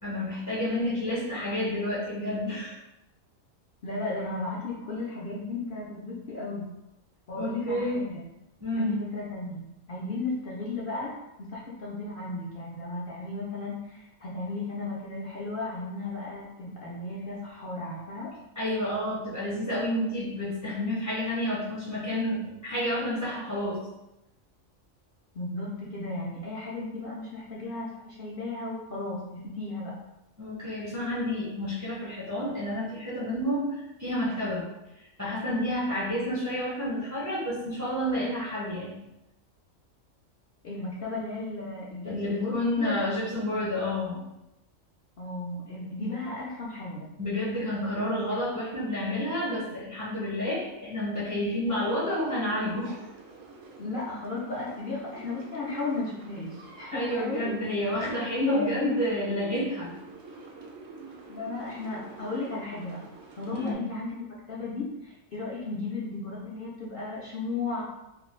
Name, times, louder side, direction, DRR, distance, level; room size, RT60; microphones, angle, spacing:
voice 1, 0.0-2.8 7.4-8.0 8.6-8.9 18.6-23.9 30.4-34.7 35.2-39.0 42.0-44.2 47.2-53.0 56.9-59.9 63.5-63.8, left 1 dB, 25° right, -7 dB, 0.4 m, -30 dB
voice 2, 3.8-6.6 7.3-8.2 8.8-11.1 11.4-18.3 25.3-29.9 40.6-43.6 45.2-47.1 53.8-57.5 58.4-59.0 61.3-63.0 63.4-67.8, left 3 dB, 55° left, -6 dB, 0.6 m, -34 dB
sound 1, 51.7-63.7, right 3 dB, 75° right, 0.9 m, -48 dB
2.5 x 2.2 x 3.1 m, 0.91 s
omnidirectional pair, 1.3 m